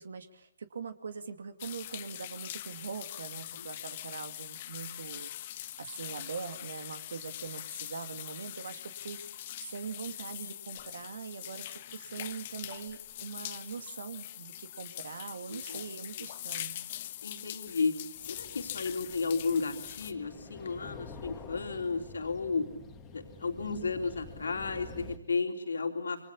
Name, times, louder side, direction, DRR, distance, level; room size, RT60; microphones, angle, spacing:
voice 1, 0.0-5.3 5.6-16.7, right 5 dB, 65° right, 9 dB, 2.5 m, -42 dB
sound 1, 1.6-20.1, left 13 dB, 40° left, 1.3 m, -43 dB
voice 2, 15.5-15.8 17.2-18.0 18.3-22.7 23.1-26.3, left 4 dB, 75° left, 3 dB, 3.6 m, -33 dB
sound 2, 18.2-25.2, left 3 dB, 15° left, 2.6 m, -49 dB
28.0 x 25.0 x 8.4 m, 0.79 s
hypercardioid pair, 145°, 0 cm